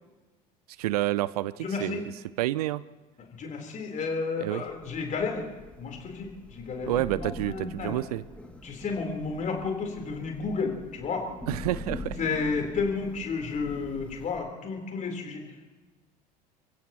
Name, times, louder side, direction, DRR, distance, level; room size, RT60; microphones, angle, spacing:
voice 1, 0.8-2.1 2.4-2.8 4.4-4.6 6.9-8.2 11.5-12.2, right 15 dB, 65° right, 19 dB, 0.5 m, -29 dB
voice 2, 1.6-2.0 3.3-5.5 5.8-8.0 8.6-11.3 12.2-15.8, left 4 dB, 35° left, 2 dB, 3.9 m, -32 dB
Thunder / Rain, 4.7-14.4, left 2 dB, 5° left, 2.4 m, -43 dB
29.5 x 16.0 x 3.0 m, 1.2 s
figure-of-eight pair, 65°, 21 cm